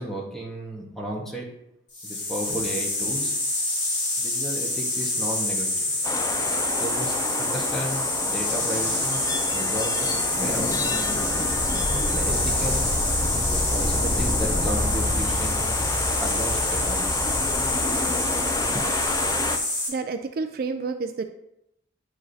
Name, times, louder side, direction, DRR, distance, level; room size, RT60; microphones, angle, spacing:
voice 1, 0.0-1.5 2.0-3.3 4.2-6.0 6.8-9.2 9.5-11.4 12.1-12.8 13.5-15.8 16.2-17.2, equal, ahead, -3 dB, 1.4 m, -33 dB
sound 1, 1.9-19.9, left 2 dB, 75° left, 2.8 m, -27 dB
sound 2, 6.0-19.6, left 2 dB, 20° left, 0.4 m, -28 dB
voice 2, 19.9-21.2, right 4 dB, 55° right, 7 dB, 0.4 m, -29 dB
9.6 x 4.9 x 2.8 m, 0.82 s
head